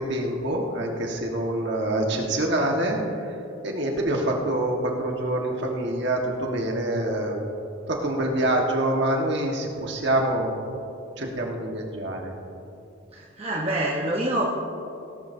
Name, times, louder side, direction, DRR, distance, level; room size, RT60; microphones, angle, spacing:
voice 1, 0.0-3.4 3.6-7.4 7.9-10.5 11.2-12.3, right 1 dB, 55° right, 0 dB, 1.5 m, -26 dB
voice 2, 13.1-14.4, right 1 dB, 30° right, -3 dB, 1.0 m, -26 dB
18.0 x 12.0 x 2.7 m, 2.7 s
head